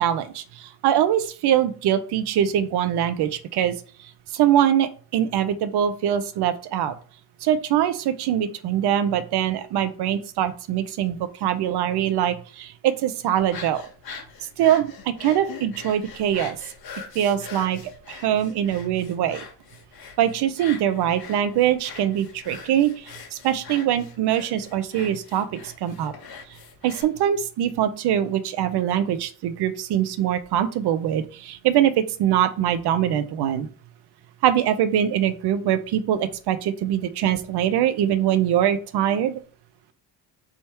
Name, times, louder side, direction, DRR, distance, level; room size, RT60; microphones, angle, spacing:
voice 1, 0.0-3.8 4.3-6.9 7.4-13.8 14.6-16.6 17.1-17.8 18.1-19.4 20.2-26.1 26.8-33.7 34.4-39.4, right 10 dB, 55° right, 12 dB, 0.8 m, -23 dB
sound 1, 13.4-27.0, left 5 dB, 45° left, 1.4 m, -42 dB
3.5 x 2.7 x 4.5 m, 0.42 s
hypercardioid pair, 65°, 49 cm